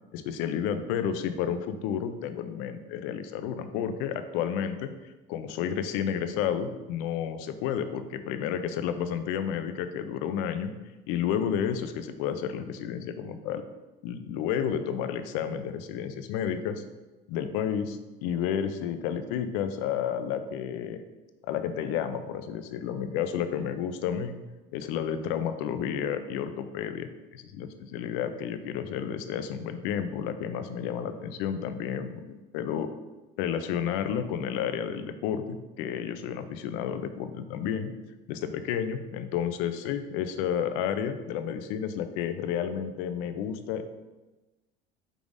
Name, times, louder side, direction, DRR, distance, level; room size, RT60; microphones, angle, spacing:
voice 1, 0.1-10.7 11.1-13.6 14.0-16.8 17.3-21.0 21.4-24.4 24.7-32.9 33.4-37.9 38.3-43.9, left 8 dB, 80° left, 9 dB, 0.4 m, -31 dB
5.1 x 3.4 x 2.5 m, 1.1 s
cardioid pair, 125°, 20 cm